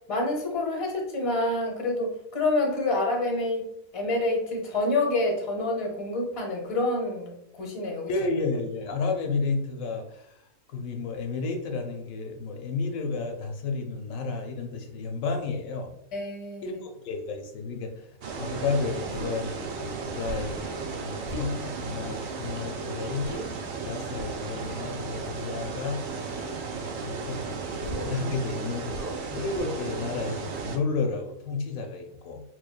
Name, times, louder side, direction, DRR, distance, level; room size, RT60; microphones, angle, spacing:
voice 1, 0.1-3.7 3.9-8.1 16.1-16.8, left 2 dB, 30° left, -1 dB, 0.7 m, -27 dB
voice 2, 8.1-15.9 16.6-18.1 18.4-23.4 23.8-26.0 27.0-32.4, left 4 dB, 75° left, 4 dB, 1.0 m, -32 dB
sound 1, 18.2-30.8, right 4 dB, 75° right, 0.4 m, -35 dB
Human voice, 19.1-19.4 20.2-20.6 21.2-21.6 23.2-23.4 24.6-24.9 26.1-26.4 27.8-28.2 28.9-29.2 29.5-29.8, right 1 dB, 35° right, 0.8 m, -37 dB
4.3 x 3.1 x 2.2 m, 0.76 s
omnidirectional pair, 1.4 m